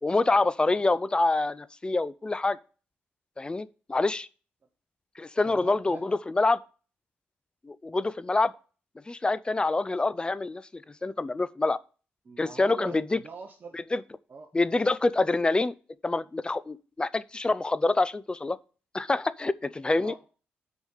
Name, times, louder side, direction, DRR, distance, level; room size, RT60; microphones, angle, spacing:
voice 1, 0.0-2.6 3.4-4.3 5.2-6.6 7.6-8.5 9.1-11.8 12.4-13.2 13.9-14.0 14.5-15.7 16.0-18.6 18.9-20.1, left 2 dB, 20° left, 0.5 m, -26 dB
voice 2, 5.4-6.2 12.2-13.8 14.3-14.5 20.0-20.1, right 4 dB, 45° right, 1.2 m, -43 dB
6.2 x 5.3 x 6.5 m
supercardioid pair, 65°, 4 cm